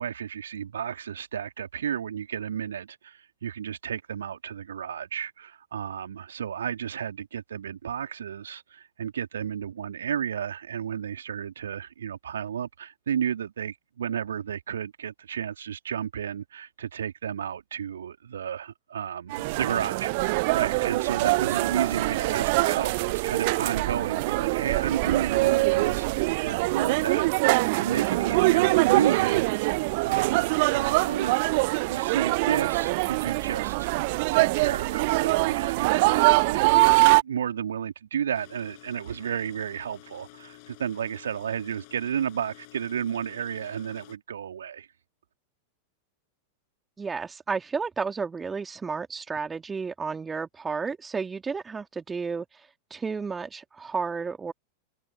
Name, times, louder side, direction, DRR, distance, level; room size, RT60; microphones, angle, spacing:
voice 1, 0.0-29.5 30.0-31.6 31.9-33.9 34.3-37.0 37.2-44.9, right 8 dB, 65° right, 2.7 m, -32 dB
sound 1, 19.3-37.2, right 25 dB, 50° right, 0.5 m, -23 dB
sound 2, 38.3-44.2, left 30 dB, 45° left, 6.6 m, -51 dB
voice 2, 47.0-54.5, right 5 dB, 15° right, 2.3 m, -32 dB
figure-of-eight pair, 90°, 0 cm